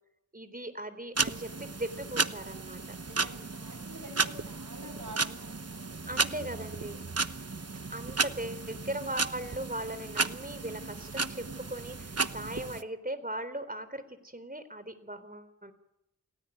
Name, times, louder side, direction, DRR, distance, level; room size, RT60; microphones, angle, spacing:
voice 1, 0.3-3.0 3.3-3.5 6.1-7.1 7.9-15.7, right 1 dB, 30° right, 11 dB, 3.7 m, -39 dB
sound 1, 1.2-12.8, right 4 dB, 55° right, 1.1 m, -34 dB
voice 2, 3.0-6.6, right 1 dB, 80° right, -1 dB, 6.8 m, -49 dB
28.5 x 18.0 x 9.3 m, 0.83 s
wide cardioid pair, 40°, 30 cm